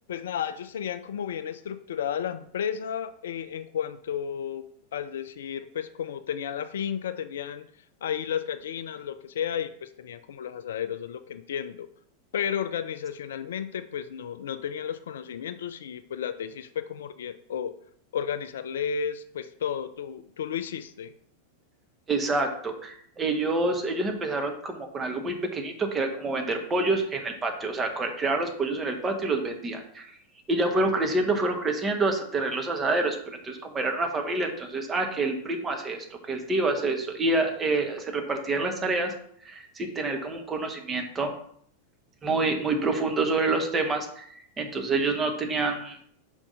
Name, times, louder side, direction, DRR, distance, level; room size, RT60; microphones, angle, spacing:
voice 1, 0.1-4.6 4.9-7.6 8.0-11.9 12.3-17.7 18.1-21.1, left 8 dB, 60° left, 11 dB, 0.3 m, -33 dB
voice 2, 22.1-30.1 30.5-39.1 39.4-41.3 42.2-44.3 44.6-46.0, right 2 dB, 20° right, 4 dB, 1.1 m, -27 dB
5.3 x 3.6 x 5.3 m, 0.63 s
figure-of-eight pair, 90°, 0 cm